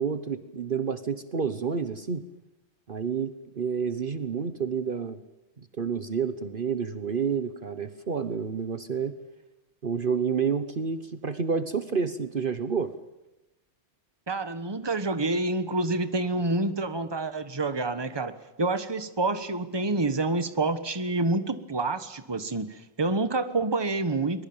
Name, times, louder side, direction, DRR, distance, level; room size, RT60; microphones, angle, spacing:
voice 1, 0.0-2.3 2.9-5.2 5.6-9.1 9.8-12.9, right 6 dB, 50° right, 11 dB, 1.2 m, -29 dB
voice 2, 14.3-24.4, right 2 dB, 20° right, 11 dB, 1.3 m, -28 dB
23.5 x 21.5 x 8.8 m, 0.96 s
omnidirectional pair, 1.2 m